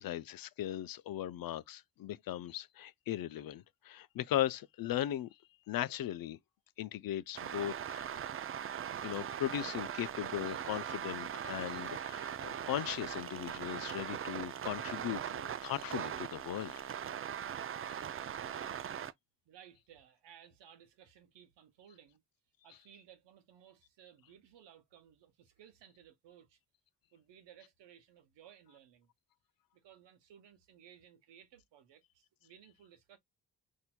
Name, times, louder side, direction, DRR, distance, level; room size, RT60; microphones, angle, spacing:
voice 1, 0.0-5.3 5.7-6.4 6.8-8.2 9.0-16.8 17.9-18.0, left 12 dB, 55° left, 0.5 m, -38 dB
sound 1, 7.4-19.1, right 9 dB, 35° right, 0.4 m, -40 dB
voice 2, 19.5-22.2 22.6-26.6 27.1-29.1 29.7-33.2, right 9 dB, 80° right, 0.9 m, -59 dB
4.2 x 2.7 x 2.2 m
supercardioid pair, 55°, 43 cm